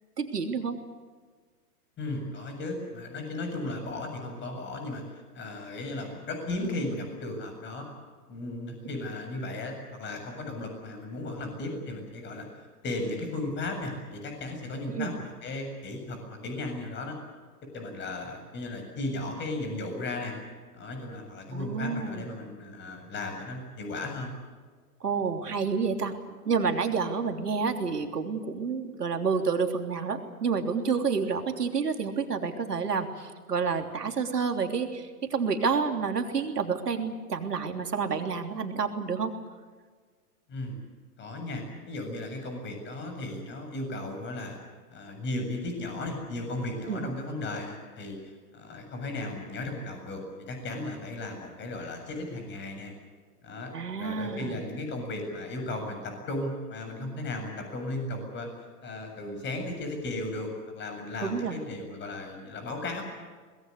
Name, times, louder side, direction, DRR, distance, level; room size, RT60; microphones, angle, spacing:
voice 1, 0.2-0.8 14.9-15.1 21.5-22.3 25.0-26.1 26.4-39.3 46.9-47.2 53.7-54.6 61.2-61.6, right 5 dB, 90° right, 5 dB, 3.4 m, -29 dB
voice 2, 2.0-7.9 8.3-12.5 12.8-17.2 17.6-20.4 20.7-24.3 40.5-40.8 41.2-44.6 44.9-48.2 48.5-52.9 53.4-53.7 54.0-58.5 58.8-63.0, left 2 dB, 25° left, 4 dB, 7.4 m, -35 dB
23.5 x 21.0 x 8.3 m, 1.5 s
hypercardioid pair, 125°, 46 cm